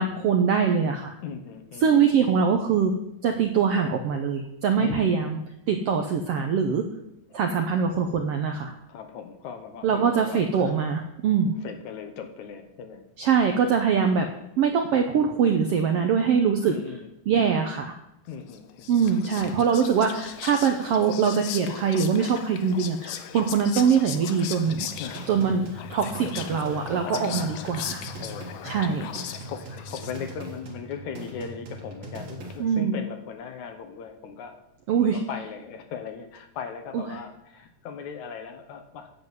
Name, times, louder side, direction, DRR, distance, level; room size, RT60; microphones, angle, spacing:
voice 1, 0.0-1.1 1.8-2.9 3.2-5.4 5.7-6.8 7.3-8.7 9.8-11.5 13.2-14.3 14.6-16.7 17.3-17.9 18.9-24.9 25.3-28.0 28.6-29.1 32.6-33.0 34.9-35.2 36.9-37.0, right 6 dB, 75° right, 4 dB, 1.4 m, -23 dB
voice 2, 1.2-2.1 4.8-5.3 8.9-10.7 11.6-13.1 16.7-17.1 18.3-18.9 25.0-25.5 26.2-27.8 28.2-34.6 35.0-39.1, left 6 dB, 70° left, 7 dB, 2.2 m, -38 dB
Whispering, 18.5-30.5, left 10 dB, 90° left, 1.4 m, -38 dB
sound 1, 24.7-32.7, right 2 dB, 55° right, 2.7 m, -41 dB
9.5 x 7.7 x 7.4 m, 0.81 s
omnidirectional pair, 3.8 m